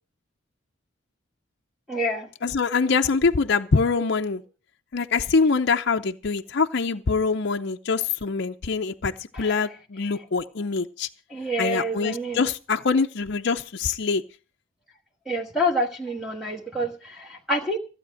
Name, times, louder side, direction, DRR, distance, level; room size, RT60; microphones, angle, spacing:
voice 1, 1.9-2.3 9.3-9.6 11.3-12.4 15.3-17.8, equal, ahead, 1.3 m, -27 dB
voice 2, 2.4-4.4 4.9-11.1 11.6-14.2, left 4 dB, 55° left, 0.6 m, -24 dB
15.0 x 8.5 x 6.3 m
head